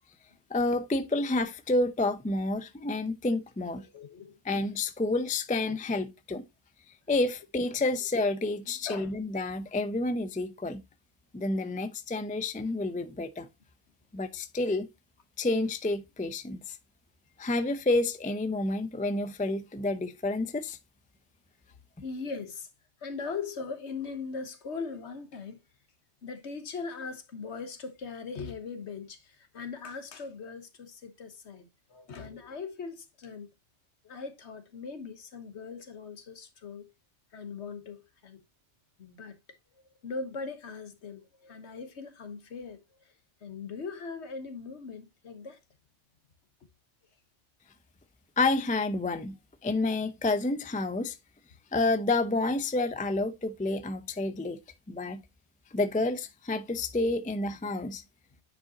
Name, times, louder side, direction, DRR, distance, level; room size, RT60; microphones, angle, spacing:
voice 1, 0.5-3.9 4.4-6.4 7.1-10.8 11.3-13.5 14.1-14.9 15.4-16.8 17.4-20.8 48.4-49.4 49.6-51.2 51.7-54.6 54.9-55.2 55.7-58.0, left 2 dB, 10° left, 0.4 m, -29 dB
voice 2, 3.8-4.4 5.6-5.8 8.9-9.1 22.0-22.7 23.0-25.6 26.2-33.5 34.0-36.9 37.3-38.4 39.0-39.4 40.0-42.8 43.4-45.6, left 4 dB, 65° left, 1.4 m, -40 dB
9.7 x 5.1 x 2.9 m
omnidirectional pair, 1.3 m